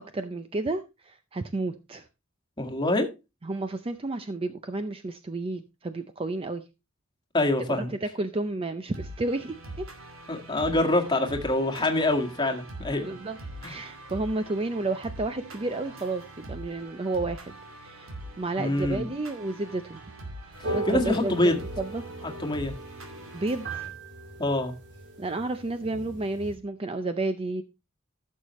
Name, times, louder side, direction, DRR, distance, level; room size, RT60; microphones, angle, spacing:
voice 1, 0.1-2.1 3.4-6.6 7.7-9.9 13.0-13.4 13.6-20.0 20.7-22.0 23.3-23.9 25.2-27.6, right 2 dB, 25° right, 0.5 m, -31 dB
voice 2, 2.6-3.1 7.3-7.9 10.3-13.1 13.6-13.7 18.6-19.1 20.6-21.6 22.4-22.7 24.4-24.7, left 1 dB, 20° left, 1.7 m, -25 dB
sound 1, 8.9-23.9, right 1 dB, 75° right, 2.5 m, -43 dB
sound 2, 20.5-26.5, right 2 dB, 60° right, 3.4 m, -38 dB
15.0 x 6.5 x 3.1 m
head